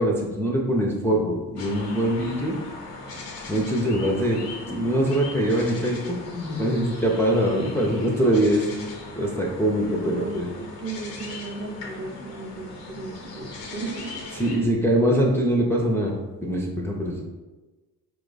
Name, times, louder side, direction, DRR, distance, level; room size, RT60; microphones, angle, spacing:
voice 1, 0.0-2.6 3.5-4.4 4.7-8.6 9.2-10.5 14.3-17.2, right 1 dB, 5° left, -3 dB, 0.6 m, -23 dB
sound 1, 1.6-14.6, left 3 dB, 90° left, 0.7 m, -39 dB
voice 2, 9.8-13.5 13.7-14.1 14.5-14.6, right 2 dB, 25° right, -1 dB, 0.8 m, -35 dB
4.6 x 2.2 x 3.9 m, 1.2 s
hypercardioid pair, 45°, 48 cm